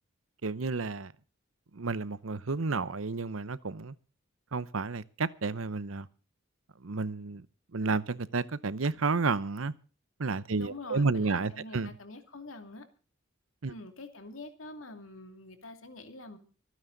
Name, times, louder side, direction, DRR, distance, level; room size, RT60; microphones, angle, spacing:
voice 1, 0.4-1.1 1.7-3.9 4.5-6.1 6.8-7.5 7.7-9.7 10.2-11.9 13.6-13.7, right 4 dB, 85° right, 0.8 m, -31 dB
voice 2, 10.5-12.8 13.7-16.4, left 2 dB, 80° left, 2.6 m, -45 dB
25.5 x 9.6 x 4.0 m
head